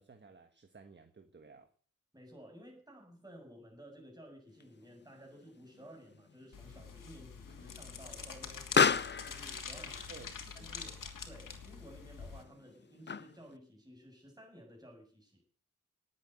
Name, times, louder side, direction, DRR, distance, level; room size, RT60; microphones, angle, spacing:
voice 1, 0.0-1.7 10.1-10.8, right 4 dB, 35° right, 7 dB, 1.5 m, -55 dB
voice 2, 2.1-10.1 10.5-10.9 11.2-15.4, equal, 10° right, 0 dB, 7.6 m, -54 dB
Explosion, 4.6-13.6, left 6 dB, 35° left, 0.6 m, -36 dB
sound 1, 6.5-12.4, left 6 dB, 80° left, 2.8 m, -46 dB
19.0 x 8.7 x 8.1 m, 0.43 s
wide cardioid pair, 155°, 32 cm